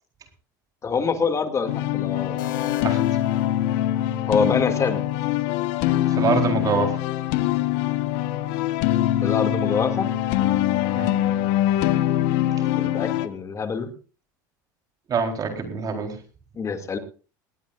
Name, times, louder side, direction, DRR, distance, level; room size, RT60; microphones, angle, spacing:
voice 1, 0.8-2.4 4.3-5.0 9.2-10.1 12.8-13.9 16.6-17.0, left 5 dB, 30° left, 7 dB, 2.4 m, -25 dB
sound 1, 1.7-13.3, left 13 dB, 65° left, 1.3 m, -23 dB
sound 2, 2.4-4.3, left 8 dB, 85° left, 1.7 m, -37 dB
voice 2, 6.1-7.0 11.0-11.1 15.1-16.2, right 5 dB, 35° right, 3 dB, 4.0 m, -24 dB
20.0 x 18.0 x 2.5 m, 0.37 s
hypercardioid pair, 95°, 11 cm